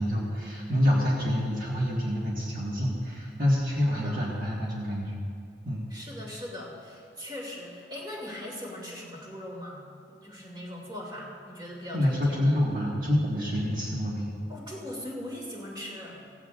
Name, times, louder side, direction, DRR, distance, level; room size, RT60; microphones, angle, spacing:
voice 1, 0.0-5.3 5.6-5.8 11.9-14.3, left 1 dB, 50° right, -5 dB, 1.7 m, -27 dB
voice 2, 5.9-9.8 10.1-12.4 14.5-16.2, left 1 dB, 25° right, -3 dB, 2.4 m, -40 dB
16.5 x 16.0 x 2.5 m, 2.3 s
head